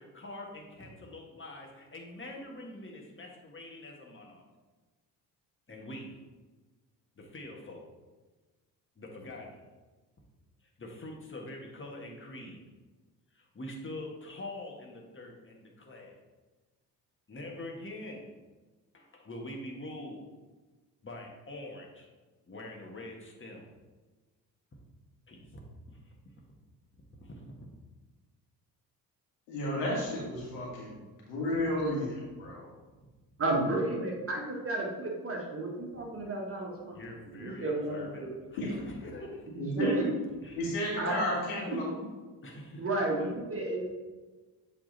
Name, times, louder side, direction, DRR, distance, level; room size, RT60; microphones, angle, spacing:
voice 1, 0.0-4.4 5.7-6.2 7.2-7.9 8.9-9.7 10.8-12.6 13.3-16.2 17.3-18.3 18.9-20.2 21.0-22.1 22.5-23.7 25.3-26.1 26.9-27.7 29.8-29.9 32.4-32.5 36.9-39.5 40.4-40.6 42.4-42.8, left 1 dB, 25° left, 0 dB, 1.6 m, -44 dB
voice 2, 29.5-30.9 31.3-32.7 38.6-38.7 39.6-40.1 40.5-41.9, left 1 dB, 70° left, -3 dB, 1.8 m, -32 dB
voice 3, 33.4-37.0 37.3-38.3 39.5-40.1 41.0-41.4 41.7-42.1 42.8-43.9, right 2 dB, 25° right, -1 dB, 1.7 m, -32 dB
7.5 x 3.6 x 4.1 m, 1.3 s
figure-of-eight pair, 45°, 49 cm